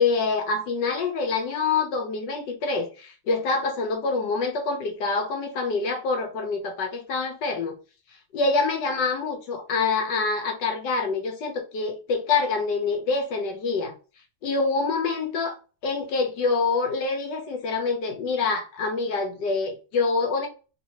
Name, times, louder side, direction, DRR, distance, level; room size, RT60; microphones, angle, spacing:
voice 1, 0.0-7.7 8.3-13.9 14.4-15.6 15.8-20.5, left 4 dB, 85° left, 1.6 m, -26 dB
3.8 x 2.9 x 2.7 m
omnidirectional pair, 1.8 m